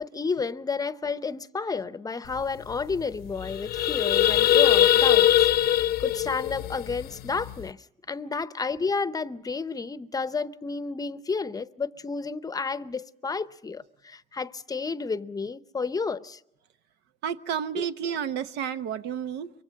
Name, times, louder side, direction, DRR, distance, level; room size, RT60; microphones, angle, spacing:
voice 1, 0.0-5.5 6.0-16.4, left 4 dB, 20° left, 0.7 m, -31 dB
sound 1, 2.4-2.5 2.7-2.9 3.3-7.6, left 11 dB, 65° left, 0.7 m, -22 dB
voice 2, 17.2-19.5, right 8 dB, 85° right, 1.0 m, -31 dB
24.0 x 23.5 x 5.3 m
cardioid pair, 110°, 17 cm